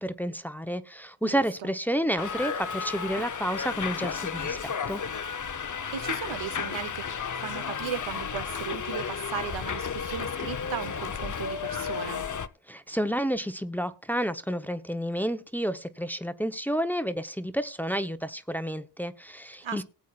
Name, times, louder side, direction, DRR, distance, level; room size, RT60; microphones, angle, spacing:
voice 1, 0.0-5.0 12.7-19.8, equal, 5° left, 0.8 m, -30 dB
voice 2, 1.2-1.7 5.7-7.1 7.3-12.2 19.6-19.8, right 9 dB, 80° right, 0.9 m, -37 dB
Subway metro underground, 2.2-12.5, left 6 dB, 40° left, 0.8 m, -33 dB
19.0 x 8.3 x 2.4 m
cardioid pair, 75°, 46 cm